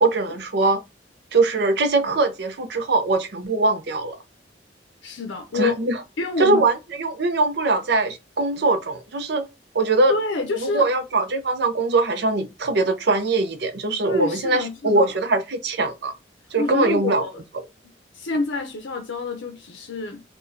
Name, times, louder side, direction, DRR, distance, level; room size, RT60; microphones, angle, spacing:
voice 1, 0.0-0.8 1.3-4.2 5.5-5.9 6.4-9.5 9.7-10.2 10.6-16.1 16.5-17.2 17.5-17.6, right 3 dB, 60° right, 0.6 m, -22 dB
voice 2, 5.0-5.8 6.2-6.6 10.1-10.9 14.0-15.1 16.6-17.4 18.2-20.2, left 3 dB, 75° left, 0.6 m, -27 dB
3.8 x 2.3 x 2.6 m
head